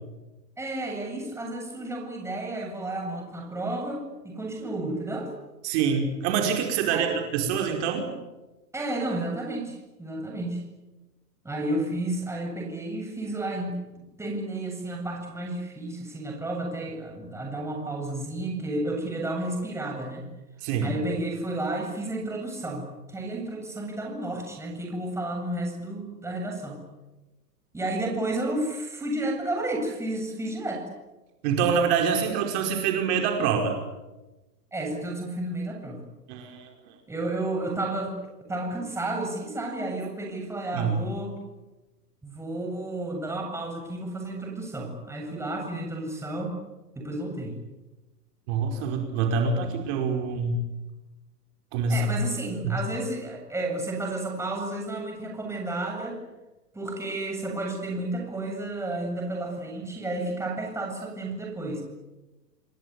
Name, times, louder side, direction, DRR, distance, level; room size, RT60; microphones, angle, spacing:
voice 1, 0.6-5.3 6.9-7.1 8.7-10.6 11.4-20.3 20.8-26.8 27.7-30.8 32.1-32.3 34.7-36.0 37.1-41.4 42.2-46.6 47.0-47.6 51.9-56.2 56.7-61.8, right 2 dB, 5° right, 1 dB, 7.7 m, -32 dB
voice 2, 5.6-8.1 20.6-20.9 31.4-33.8 36.3-36.7 40.7-41.0 48.5-50.6 51.7-52.2 52.6-52.7, right 6 dB, 40° right, 3 dB, 5.2 m, -25 dB
29.5 x 20.5 x 9.8 m, 1.1 s
hypercardioid pair, 140°, 49 cm